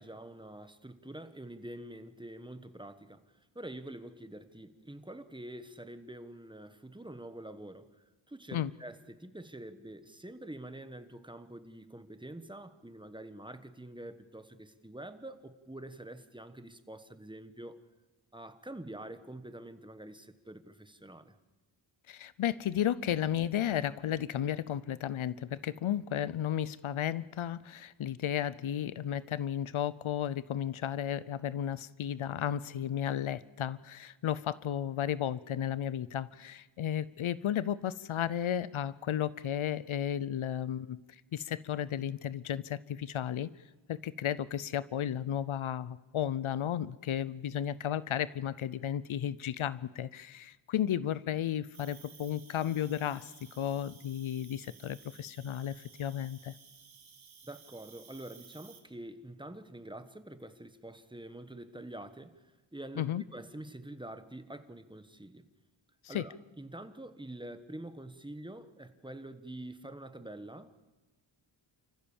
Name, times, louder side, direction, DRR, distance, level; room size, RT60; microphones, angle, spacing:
voice 1, 0.0-7.9 8.3-17.8 18.3-21.4 57.4-62.3 62.7-65.5 66.1-70.8, right 1 dB, 10° right, 10 dB, 1.3 m, -46 dB
voice 2, 22.1-41.0 41.3-43.5 43.9-56.5 63.0-63.2 66.0-66.2, left 10 dB, 80° left, 18 dB, 0.7 m, -33 dB
Cricket, 51.7-58.8, right 6 dB, 70° right, 2.5 m, -56 dB
28.5 x 15.0 x 7.2 m, 1.2 s
wide cardioid pair, 90°, 48 cm